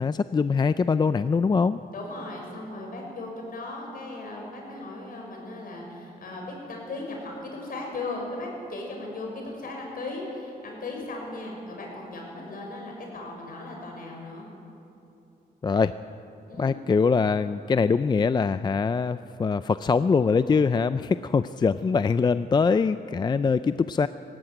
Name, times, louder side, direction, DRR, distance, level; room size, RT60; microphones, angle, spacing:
voice 1, 0.0-1.8 15.6-15.9 16.6-24.1, left 5 dB, 25° left, 13 dB, 0.4 m, -23 dB
voice 2, 1.9-14.5 16.5-16.7, left 2 dB, 65° left, 0 dB, 6.2 m, -37 dB
17.5 x 16.5 x 9.2 m, 2.9 s
cardioid pair, 110°, 16 cm